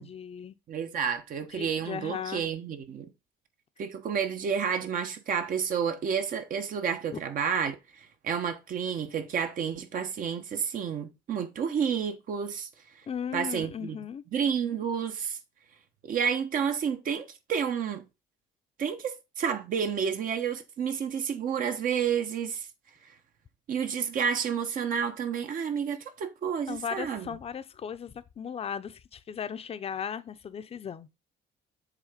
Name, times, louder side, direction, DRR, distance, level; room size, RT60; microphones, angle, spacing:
voice 1, 0.0-0.5 1.5-2.5 13.1-14.2 26.7-31.1, left 7 dB, 35° left, 0.7 m, -37 dB
voice 2, 0.7-3.1 3.8-12.7 13.3-14.0 14.3-15.4 16.0-18.0 18.8-22.7 23.7-27.3, right 7 dB, 55° right, 1.2 m, -30 dB
7.4 x 3.6 x 5.1 m
cardioid pair, 110°, 17 cm